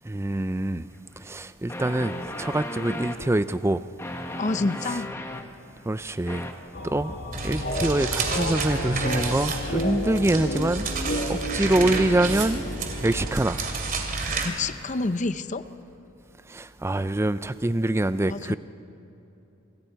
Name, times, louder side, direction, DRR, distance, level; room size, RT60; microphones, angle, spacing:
voice 1, 0.1-0.9 1.2-2.1 2.4-3.8 5.9-6.5 6.8-7.1 7.4-10.9 11.3-12.6 13.0-13.6 16.5-18.6, right 1 dB, 10° right, 13 dB, 0.4 m, -25 dB
sound 1, 0.9-1.0 1.7-3.2 4.0-5.5 6.3-6.5, left 1 dB, 10° left, 1.1 m, -35 dB
voice 2, 4.4-5.1 14.4-15.6 18.3-18.6, left 3 dB, 35° left, 12 dB, 0.6 m, -28 dB
sound 2, 6.7-14.2, left 1 dB, 50° left, 2.1 m, -32 dB
sound 3, 7.3-14.5, right 3 dB, 40° right, 2.6 m, -30 dB
26.5 x 26.5 x 4.6 m, 3.0 s
head